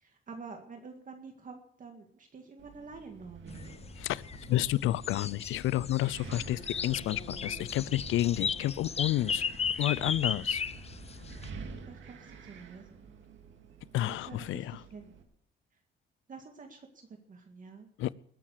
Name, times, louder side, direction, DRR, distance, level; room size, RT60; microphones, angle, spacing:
voice 1, 0.0-3.9 11.9-13.1 14.0-15.2 16.3-17.9, right 4 dB, 40° right, 4 dB, 2.0 m, -48 dB
Wind, 2.6-15.2, right 5 dB, 70° right, 2.2 m, -49 dB
sound 1, 3.5-11.5, left 6 dB, 30° left, 0.6 m, -36 dB
voice 2, 4.0-9.4 9.8-10.6 13.9-14.8 18.0-18.1, left 15 dB, 85° left, 21 dB, 0.5 m, -30 dB
20.5 x 7.6 x 6.5 m, 0.70 s
cardioid pair, 90°, 20 cm